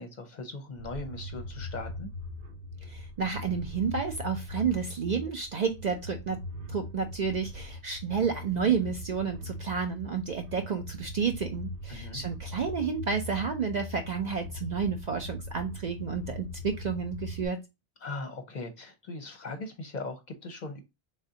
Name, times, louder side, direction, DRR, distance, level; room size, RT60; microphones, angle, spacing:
voice 1, 0.0-2.1 11.9-12.2 18.0-20.8, left 3 dB, 50° left, 0.7 m, -39 dB
sound 1, 0.7-17.5, left 1 dB, 80° right, 1.2 m, -41 dB
voice 2, 2.9-6.4 6.7-17.6, right 6 dB, 55° right, 0.5 m, -31 dB
3.7 x 3.4 x 2.6 m
omnidirectional pair, 1.1 m